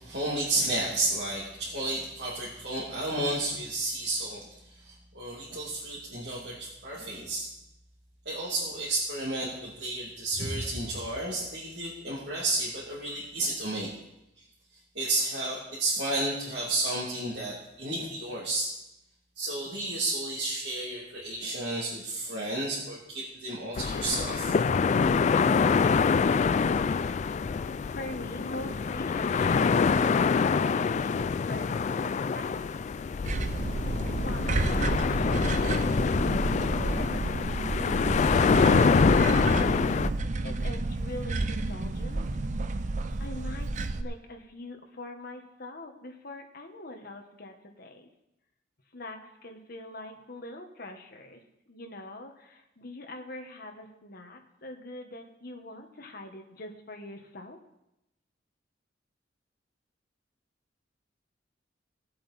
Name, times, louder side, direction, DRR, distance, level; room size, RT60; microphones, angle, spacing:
voice 1, 0.0-7.5 8.2-13.9 14.9-18.7 19.3-24.5, right 2 dB, 60° right, -7 dB, 2.7 m, -32 dB
sound 1, 23.7-40.1, left 5 dB, 40° left, 0.3 m, -25 dB
voice 2, 27.8-33.0 33.8-37.8 38.5-39.9 40.4-42.2 43.2-48.1 48.9-51.4 51.7-57.6, left 1 dB, 55° left, 4 dB, 1.4 m, -43 dB
sound 2, 33.2-44.0, right 2 dB, 40° right, 0.6 m, -30 dB
18.0 x 7.6 x 4.3 m, 0.87 s
head